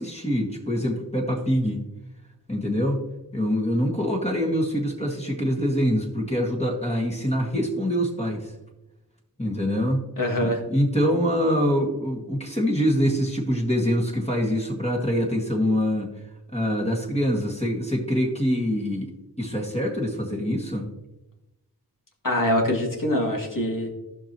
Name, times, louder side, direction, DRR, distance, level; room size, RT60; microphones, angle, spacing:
voice 1, 0.0-1.8 2.5-8.5 9.4-10.1 10.4-16.1 16.5-19.1 19.4-20.9, equal, 15° left, -1 dB, 1.8 m, -25 dB
voice 2, 10.2-10.6 22.2-23.9, left 1 dB, 55° left, -1 dB, 2.4 m, -24 dB
15.0 x 5.9 x 2.9 m, 0.97 s
wide cardioid pair, 45°, 39 cm